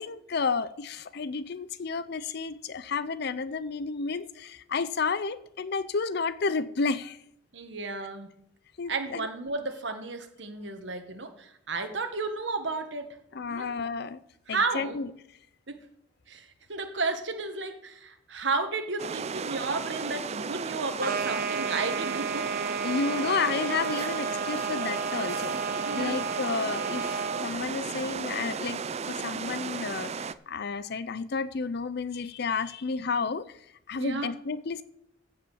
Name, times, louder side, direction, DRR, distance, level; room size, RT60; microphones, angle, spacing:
voice 1, 0.0-7.2 8.8-9.3 13.3-14.2 14.5-15.1 22.8-25.6 26.0-33.6 33.9-34.8, left 4 dB, 55° left, 15 dB, 0.5 m, -31 dB
voice 2, 7.5-8.3 8.9-13.2 13.5-13.7 14.5-15.0 15.7-15.8 16.3-22.5 25.8-26.2 33.9-34.3, right 3 dB, 65° right, 6 dB, 1.6 m, -33 dB
sound 1, 19.0-30.3, right 5 dB, 35° right, 0.5 m, -35 dB
sound 2, 21.0-27.5, right 5 dB, 50° right, 1.2 m, -32 dB
16.0 x 5.5 x 7.2 m, 0.74 s
head